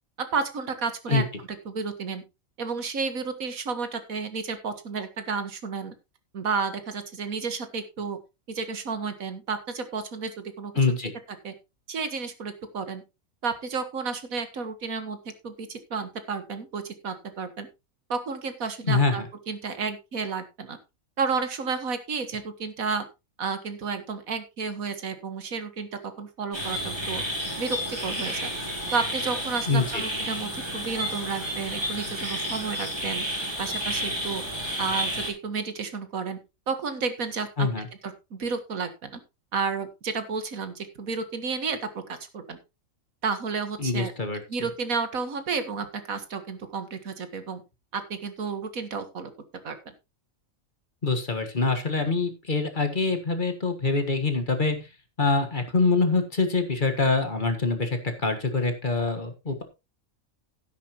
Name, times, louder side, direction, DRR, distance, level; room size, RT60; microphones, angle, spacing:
voice 1, 0.2-1.3 1.7-2.2 2.6-5.9 6.3-8.2 8.5-10.7 11.4-11.5 11.9-13.0 13.4-15.2 15.4-17.7 18.1-20.8 21.2-23.1 23.4-25.9 26.2-27.2 27.6-28.5 28.9-33.3 33.6-34.4 34.8-36.4 36.7-37.7 38.0-39.2 39.5-42.6 43.2-44.1 44.5-47.6 47.9-49.3 49.6-49.9, right 5 dB, 80° right, 10 dB, 1.9 m, -31 dB
voice 2, 10.8-11.1 18.9-19.2 29.7-30.0 37.6-37.9 43.8-44.4 51.0-54.8 55.2-59.6, left 3 dB, 35° left, 6 dB, 1.7 m, -25 dB
sound 1, 26.5-35.3, equal, 20° right, 3.2 m, -31 dB
12.5 x 10.0 x 3.0 m, 0.25 s
omnidirectional pair, 1.4 m